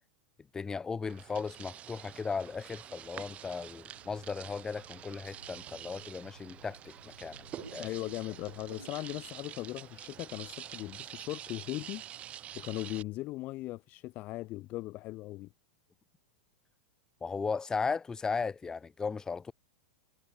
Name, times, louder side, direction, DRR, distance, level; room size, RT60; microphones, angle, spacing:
voice 1, 0.5-7.9 17.2-19.5, left 5 dB, 15° left, 0.8 m, -36 dB
sound 1, 1.0-13.0, right 11 dB, 30° right, 0.5 m, -47 dB
sound 2, 3.9-9.3, right 3 dB, 85° right, 3.4 m, -55 dB
voice 2, 7.8-12.0 12.5-15.5, left 18 dB, 35° left, 0.4 m, -39 dB
figure-of-eight pair, 90°, 4 cm